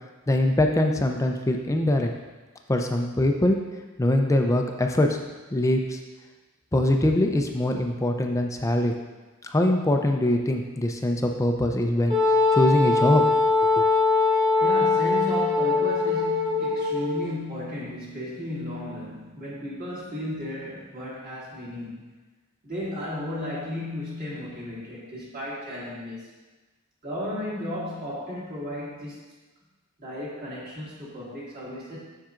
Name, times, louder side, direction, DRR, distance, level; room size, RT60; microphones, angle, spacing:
voice 1, 0.3-2.1 2.7-3.6 4.0-5.2 5.5-6.0 6.7-8.9 9.5-12.1 12.5-13.2, left 1 dB, 15° left, 3 dB, 0.4 m, -22 dB
Wind instrument woodwind instrument, 12.1-17.2, left 3 dB, 20° right, 1.6 m, -22 dB
voice 2, 14.6-22.1 22.6-26.3 27.0-29.2 30.0-32.0, left 1 dB, 40° right, -7 dB, 2.0 m, -34 dB
7.3 x 6.5 x 2.5 m, 1.2 s
head